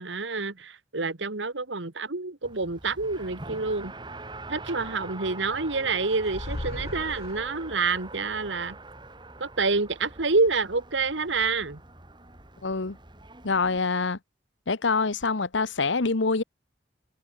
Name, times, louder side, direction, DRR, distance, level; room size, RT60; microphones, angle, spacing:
voice 1, 0.0-3.9 4.5-8.8 9.4-11.8, right 3 dB, 80° right, 1.7 m, -28 dB
Race car auto racing, 2.4-13.8, right 2 dB, 25° right, 3.9 m, -43 dB
sound 1, 6.2-7.9, left 1 dB, 55° left, 1.3 m, -37 dB
voice 2, 12.6-13.0 13.4-14.2 14.7-16.4, left 4 dB, 80° left, 1.2 m, -25 dB
head